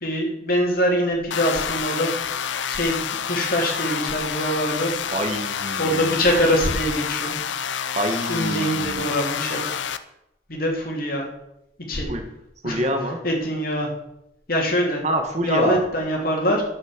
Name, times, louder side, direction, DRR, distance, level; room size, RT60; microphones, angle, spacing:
voice 1, 0.0-2.1 2.7-3.0 3.3-5.0 5.8-7.4 8.3-9.6 10.5-11.2 11.9-12.1 12.6-12.8 13.2-13.9 14.5-15.0 15.4-16.6, equal, 50° left, 0 dB, 3.0 m, -23 dB
sound 1, 1.3-10.0, left 7 dB, 75° left, 0.7 m, -28 dB
voice 2, 5.1-6.3 8.0-9.1 12.1-12.2 12.6-13.2 15.0-15.8, right 1 dB, 35° right, 4 dB, 1.6 m, -26 dB
10.5 x 7.4 x 7.4 m, 0.85 s
head